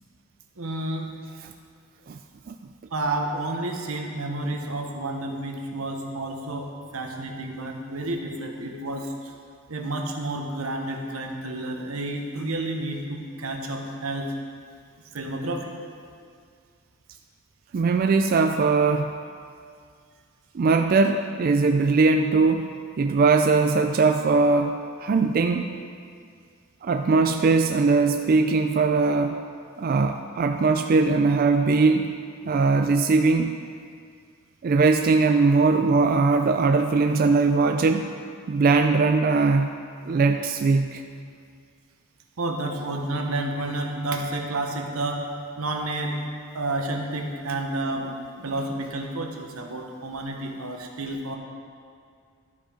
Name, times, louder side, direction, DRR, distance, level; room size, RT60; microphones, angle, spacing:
voice 1, 0.6-1.1 2.9-9.3 9.7-14.3 15.1-15.7 32.4-32.9 42.4-45.3 45.6-46.2 46.5-51.4, right 2 dB, 90° right, 2 dB, 1.1 m, -30 dB
voice 2, 17.7-19.1 20.5-22.7 23.0-24.7 25.0-25.8 26.8-29.4 29.8-32.1 32.5-33.6 34.6-38.1 38.5-39.7 40.1-41.0, right 4 dB, 45° right, 6 dB, 0.3 m, -20 dB
12.5 x 5.4 x 5.0 m, 2.2 s
head